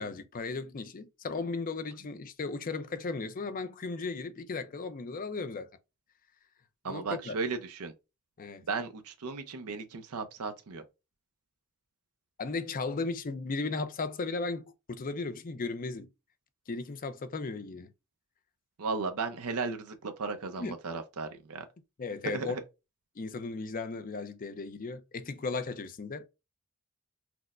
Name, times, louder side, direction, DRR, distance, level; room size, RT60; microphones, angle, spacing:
voice 1, 0.0-5.7 6.9-7.3 8.4-8.6 12.4-16.1 16.7-17.9 20.6-20.8 22.0-22.6 23.2-26.3, left 3 dB, 40° left, 0.5 m, -36 dB
voice 2, 6.8-7.9 8.7-10.8 18.8-21.6 22.2-22.6, right 4 dB, 75° right, 0.6 m, -35 dB
6.0 x 2.1 x 2.4 m
head